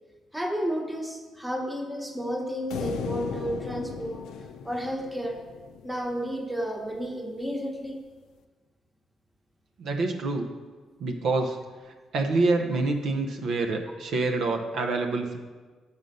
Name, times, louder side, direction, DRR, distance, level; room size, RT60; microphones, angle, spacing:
voice 1, 0.3-4.2 4.6-5.4 5.8-8.0 11.4-11.5, equal, 5° right, 2 dB, 1.0 m, -32 dB
sound 1, 2.7-6.1, left 7 dB, 90° left, 0.4 m, -36 dB
voice 2, 9.8-10.5 11.0-11.6 12.1-15.4, right 3 dB, 70° right, 4 dB, 0.7 m, -26 dB
6.3 x 5.4 x 5.3 m, 1.4 s
cardioid pair, 90°, 0 cm